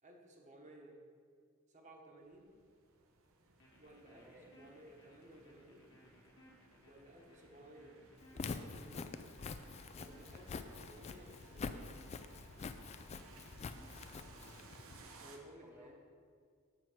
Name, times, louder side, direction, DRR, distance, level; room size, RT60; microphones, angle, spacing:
voice 1, 0.0-1.0 1.7-2.5 3.8-5.9 6.8-8.0 8.3-9.2 9.9-11.8 15.2-15.9, right 1 dB, 35° right, 1 dB, 1.1 m, -57 dB
sound 1, 2.2-15.4, right 3 dB, 85° right, 0.9 m, -62 dB
sound 2, 3.6-15.2, equal, 65° left, 1.5 m, -65 dB
voice 2, 4.1-4.5 13.9-14.6 15.4-15.9, equal, 10° right, -4 dB, 0.7 m, -63 dB
Walk footsteps, 8.2-15.0, left 4 dB, 30° left, 0.3 m, -46 dB
8.0 x 4.6 x 6.2 m, 2.1 s
head